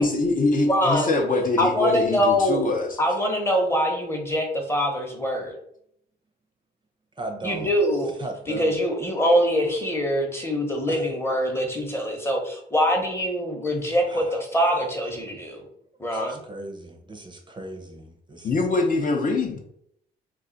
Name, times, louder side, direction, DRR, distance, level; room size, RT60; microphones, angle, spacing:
voice 1, 0.0-3.0 18.4-19.6, left 3 dB, 45° left, 2 dB, 0.6 m, -23 dB
voice 2, 0.7-1.1 1.6-2.6 3.0-5.5 7.4-8.1 8.5-15.6 16.0-16.4, equal, 10° left, 2 dB, 0.8 m, -24 dB
voice 3, 7.2-7.7 8.2-8.7 10.9-11.1 14.1-14.4 16.1-18.5, right 3 dB, 25° right, 2 dB, 0.6 m, -37 dB
2.4 x 2.3 x 3.8 m, 0.72 s
cardioid pair, 90°, 20 cm